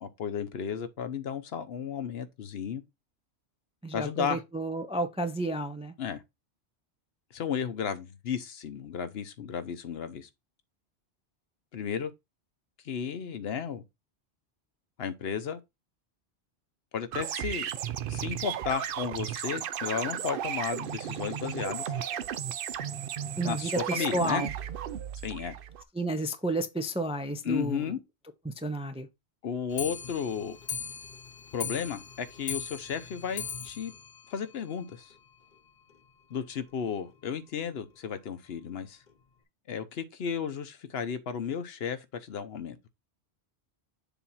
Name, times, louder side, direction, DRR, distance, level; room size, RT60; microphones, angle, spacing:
voice 1, 0.0-2.8 3.9-4.4 6.0-6.2 7.3-10.3 11.7-12.1 12.8-13.8 15.0-15.6 16.9-17.7 18.1-21.9 23.4-24.4 25.2-25.6 27.4-28.0 29.4-30.6 31.5-33.9 34.3-35.1 36.3-39.0 39.7-42.9, left 7 dB, 70° left, 1.0 m, -34 dB
voice 2, 3.8-5.9 23.4-24.5 25.9-27.8 28.4-29.1, right 1 dB, 10° right, 0.4 m, -31 dB
sound 1, 17.1-25.8, right 9 dB, 60° right, 0.7 m, -34 dB
Clock, 29.7-35.2 35.5-35.6 35.9-36.0 36.3-36.4 36.7-36.8 37.5-37.6 38.3-38.4 39.1-39.2, left 6 dB, 45° left, 1.0 m, -40 dB
7.1 x 2.7 x 5.5 m
omnidirectional pair, 1.1 m